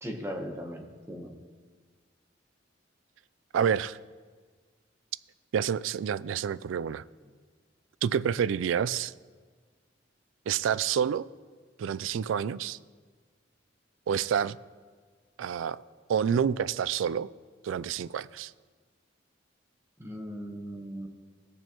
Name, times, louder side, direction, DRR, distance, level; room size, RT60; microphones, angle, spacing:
voice 1, 0.0-1.3 20.0-21.1, equal, 15° right, 1.0 m, -38 dB
voice 2, 3.5-4.0 5.5-7.0 8.0-9.1 10.5-11.3 11.8-12.8 14.1-14.6 15.4-15.8 16.1-17.3 17.6-18.5, right 8 dB, 85° right, 0.3 m, -28 dB
19.5 x 6.8 x 3.0 m
head